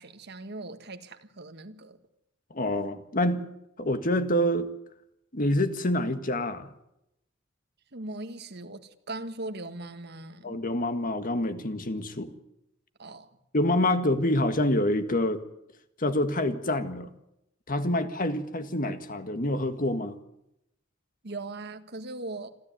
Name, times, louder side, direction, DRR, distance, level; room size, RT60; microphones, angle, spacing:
voice 1, 0.0-2.0 7.9-10.6 13.0-13.3 21.2-22.5, right 2 dB, 55° right, 8 dB, 1.7 m, -39 dB
voice 2, 2.5-3.5 3.8-4.7 5.3-6.7 10.4-12.3 13.5-15.4 16.0-17.1 17.7-20.2, left 1 dB, 45° left, 9 dB, 1.8 m, -27 dB
27.0 x 13.5 x 9.3 m, 0.83 s
head